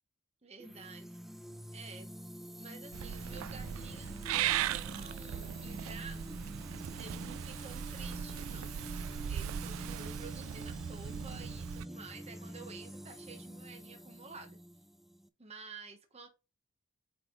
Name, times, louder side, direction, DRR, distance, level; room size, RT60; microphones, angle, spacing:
voice 1, 0.4-1.2 1.7-2.1 2.6-6.2 6.9-14.6 15.4-16.3, right 4 dB, 30° right, 1.1 m, -51 dB
sound 1, 0.6-15.3, equal, ahead, 0.5 m, -46 dB
Purr / Meow, 2.9-11.9, right 11 dB, 80° right, 0.3 m, -38 dB
8.3 x 3.4 x 3.8 m
head